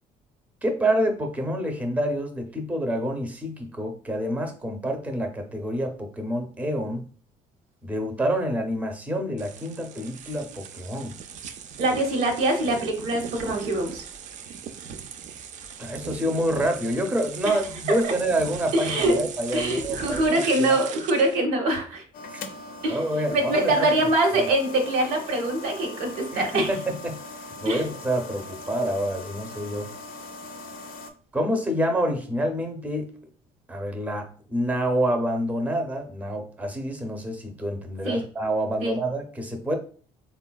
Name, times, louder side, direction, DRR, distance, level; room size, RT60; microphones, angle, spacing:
voice 1, 0.6-7.0 7.8-11.2 15.8-20.7 22.3-22.4 22.9-23.9 24.3-24.5 26.3-29.9 31.3-33.1 33.7-39.8, right 1 dB, 10° right, 4 dB, 0.6 m, -27 dB
sound 1, 9.4-21.4, right 7 dB, 55° right, 0.4 m, -39 dB
voice 2, 11.8-14.0 17.4-17.6 18.0-18.1 18.7-19.2 19.5-22.0 22.8-23.0 23.3-26.7 27.6-27.8 38.0-38.2 38.8-39.0, right 2 dB, 85° right, 2 dB, 0.8 m, -24 dB
sound 2, 22.1-31.1, left 2 dB, 75° left, 0.5 m, -40 dB
3.7 x 2.2 x 2.3 m, 0.42 s
cardioid pair, 90°, 15 cm